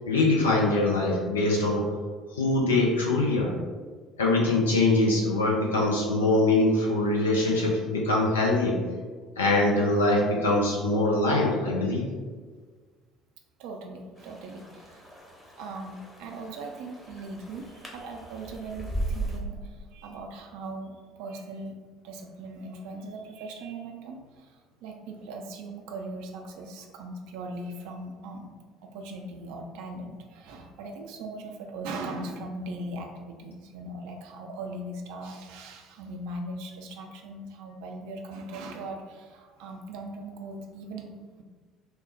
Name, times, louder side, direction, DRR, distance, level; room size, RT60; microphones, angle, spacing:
voice 1, 0.1-1.9 2.3-3.5 4.2-8.8 9.4-12.1, left 2 dB, 75° left, -2 dB, 0.4 m, -23 dB
voice 2, 13.6-15.1 15.6-21.7 22.0-28.5 28.8-41.1, right 2 dB, 60° right, 3 dB, 0.4 m, -39 dB
sound 1, 14.2-19.4, right 2 dB, 15° left, 0.9 m, -38 dB
3.2 x 2.0 x 4.0 m, 1.5 s
figure-of-eight pair, 55°, 0 cm